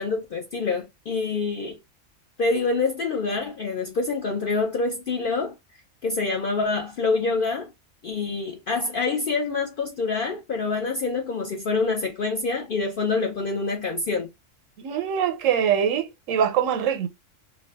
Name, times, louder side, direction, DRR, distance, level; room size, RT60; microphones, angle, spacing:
voice 1, 0.0-1.8 2.4-5.5 6.0-7.7 8.0-14.3, left 3 dB, 60° left, 0.6 m, -26 dB
voice 2, 14.8-17.1, right 8 dB, 85° right, 1.0 m, -23 dB
2.6 x 2.3 x 3.3 m
omnidirectional pair, 1.3 m